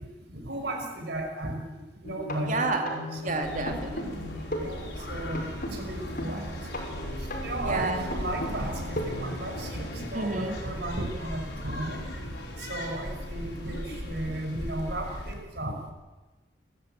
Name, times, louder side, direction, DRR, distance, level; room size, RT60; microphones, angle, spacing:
voice 1, 0.3-1.7 2.0-2.6 3.1-3.4 4.6-6.7 7.4-15.8, right 1 dB, 65° right, 2 dB, 5.6 m, -35 dB
sound 1, 2.0-9.4, left 1 dB, 50° left, 5.6 m, -37 dB
voice 2, 2.5-3.0 3.2-4.4 7.6-8.1 10.1-10.6, right 3 dB, 45° right, 4 dB, 2.3 m, -30 dB
sound 2, 3.4-15.3, equal, 70° left, 5.5 m, -38 dB
30.0 x 13.5 x 9.1 m, 1.2 s
head